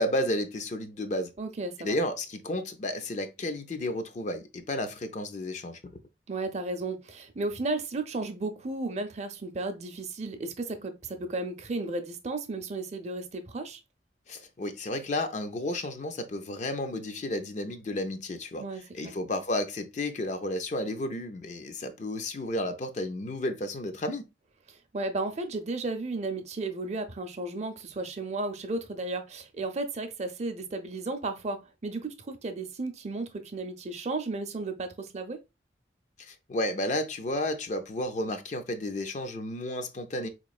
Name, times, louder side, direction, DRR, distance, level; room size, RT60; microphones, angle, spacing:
voice 1, 0.0-1.3 1.8-6.0 14.3-18.7 18.9-24.2 36.2-40.3, left 1 dB, 40° left, 0.4 m, -32 dB
voice 2, 1.4-2.0 6.3-13.8 18.6-19.1 24.9-35.4, right 2 dB, 40° right, 0.5 m, -34 dB
4.1 x 3.0 x 2.4 m
head